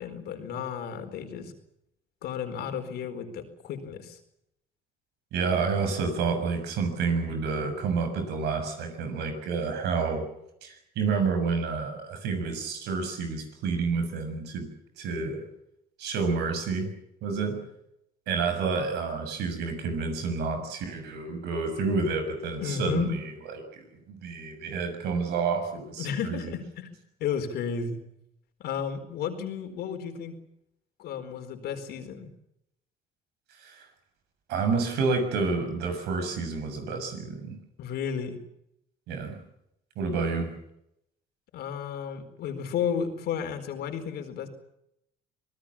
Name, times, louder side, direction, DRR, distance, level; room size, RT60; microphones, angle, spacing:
voice 1, 0.0-1.5 2.2-4.2 22.6-23.1 26.0-28.0 28.6-30.4 31.0-32.3 37.8-38.4 40.2-40.3 41.5-44.5, left 7 dB, 75° left, 6 dB, 4.4 m, -33 dB
voice 2, 5.3-10.2 10.6-14.7 15.0-15.4 16.0-16.9 17.2-17.6 18.3-23.2 23.5-26.5 33.6-33.9 34.5-37.6 39.1-39.4 40.0-40.5, right 4 dB, 80° right, 7 dB, 6.7 m, -29 dB
26.5 x 18.5 x 7.3 m, 0.80 s
cardioid pair, 110°, 17 cm